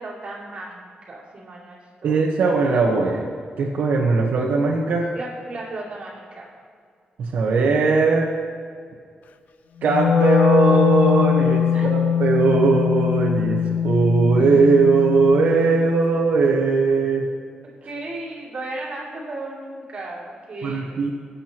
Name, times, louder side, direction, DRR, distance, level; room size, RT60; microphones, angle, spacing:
voice 1, 0.0-2.2 5.1-6.5 11.7-11.9 17.8-21.1, right 2 dB, 40° right, -5 dB, 3.0 m, -35 dB
voice 2, 2.0-3.3 3.6-5.1 7.2-8.3 9.8-13.6 13.8-17.2 20.6-21.1, right 4 dB, 75° right, -2 dB, 1.2 m, -19 dB
Wind instrument woodwind instrument, 9.8-16.0, left 7 dB, 60° left, 0.5 m, -21 dB
23.0 x 8.4 x 3.0 m, 2.1 s
wide cardioid pair, 175°, 3 cm